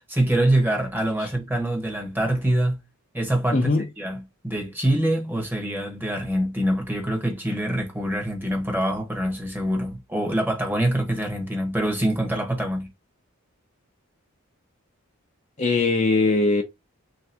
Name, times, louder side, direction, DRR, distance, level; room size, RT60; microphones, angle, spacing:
voice 1, 0.1-2.8 3.1-3.7 4.0-12.9, right 1 dB, 10° right, 1.0 m, -25 dB
voice 2, 3.5-3.9 15.6-16.6, left 3 dB, 30° left, 0.5 m, -20 dB
3.3 x 2.8 x 3.3 m
head